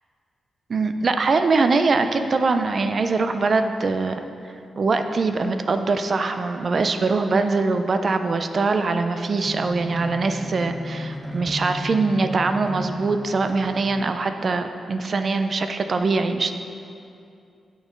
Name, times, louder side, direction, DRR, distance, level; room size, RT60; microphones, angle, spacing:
voice 1, 0.7-4.2 4.8-16.5, right 3 dB, 40° right, 8 dB, 0.4 m, -22 dB
sound 1, 9.4-14.0, left 1 dB, ahead, 0.7 m, -34 dB
8.6 x 6.2 x 3.8 m, 2.6 s
wide cardioid pair, 145°, 0 cm